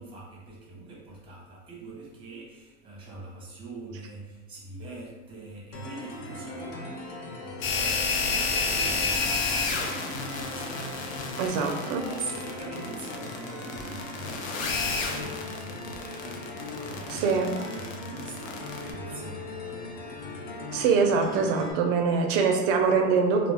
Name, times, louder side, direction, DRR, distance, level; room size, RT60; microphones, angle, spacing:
voice 1, 0.0-6.8 7.4-11.2 11.8-16.5 16.8-20.6, right 3 dB, 15° right, -3 dB, 0.7 m, -43 dB
sound 1, 5.7-21.7, left 2 dB, 45° left, 0.5 m, -39 dB
sound 2, 7.6-18.9, left 4 dB, 85° left, 0.6 m, -30 dB
voice 2, 11.4-12.1 17.1-17.5 20.7-23.5, right 5 dB, 45° right, 4 dB, 0.4 m, -24 dB
2.3 x 2.2 x 3.3 m, 1.1 s
supercardioid pair, 130°, 39 cm